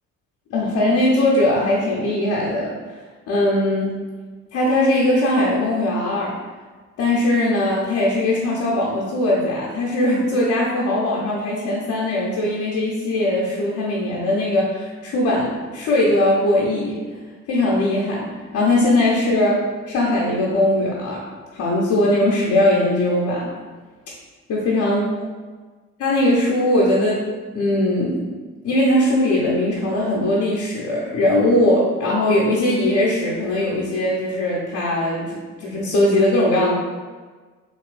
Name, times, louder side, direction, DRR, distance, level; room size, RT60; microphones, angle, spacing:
voice 1, 0.5-2.7 3.3-3.9 4.5-6.3 7.0-17.0 17.5-21.2 21.5-23.5 24.5-25.1 26.0-27.2 27.5-28.2 28.6-36.7, left 1 dB, 55° left, -5 dB, 0.7 m, -20 dB
3.4 x 3.0 x 2.5 m, 1.4 s
figure-of-eight pair, 45°, 37 cm